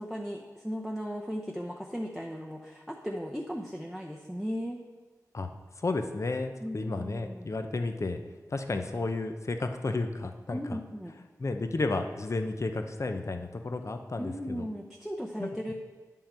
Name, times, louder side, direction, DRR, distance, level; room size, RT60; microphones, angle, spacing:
voice 1, 0.0-4.8 6.6-7.5 10.5-11.1 14.2-15.7, equal, ahead, 1 dB, 0.7 m, -36 dB
voice 2, 5.8-8.2 8.5-10.8 11.4-14.7 15.4-15.7, left 3 dB, 50° left, 7 dB, 0.7 m, -32 dB
9.1 x 5.6 x 4.3 m, 1.3 s
cardioid pair, 50°, 7 cm